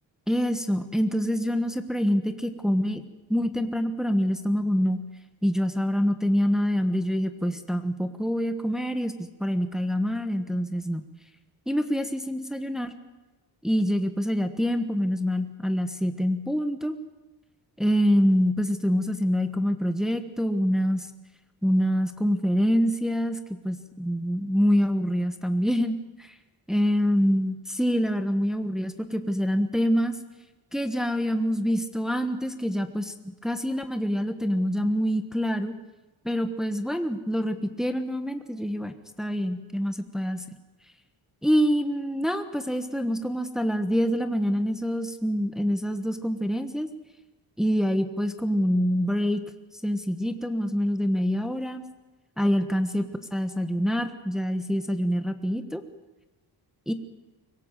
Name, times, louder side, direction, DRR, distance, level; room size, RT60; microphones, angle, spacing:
voice 1, 0.3-3.0 3.3-5.0 5.4-11.0 11.7-12.9 13.6-16.9 17.8-21.1 21.6-23.4 23.6-26.3 26.7-30.1 30.7-33.1 33.4-35.7 36.2-38.9 39.2-40.4 41.4-46.9 47.6-49.4 49.8-51.8 52.4-53.0 53.3-55.8 56.9-57.0, equal, ahead, 7 dB, 1.2 m, -25 dB
24.5 x 17.0 x 7.5 m, 1.1 s
cardioid pair, 120°, 42 cm